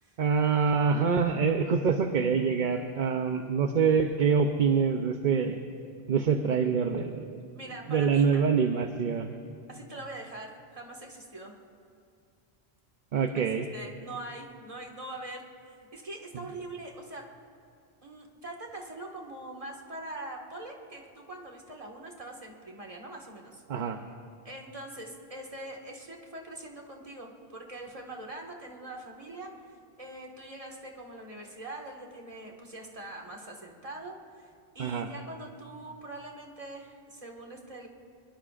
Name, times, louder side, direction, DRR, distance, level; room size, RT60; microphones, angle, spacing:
voice 1, 0.2-5.6 6.1-7.4 7.9-9.3 13.1-13.7 23.7-24.0 34.8-35.1, right 6 dB, 55° right, 6 dB, 0.8 m, -25 dB
voice 2, 7.5-8.4 9.7-11.5 13.7-17.3 18.0-23.6 24.4-37.9, right 2 dB, 35° right, 0 dB, 1.8 m, -43 dB
24.0 x 22.0 x 2.5 m, 2.3 s
omnidirectional pair, 1.1 m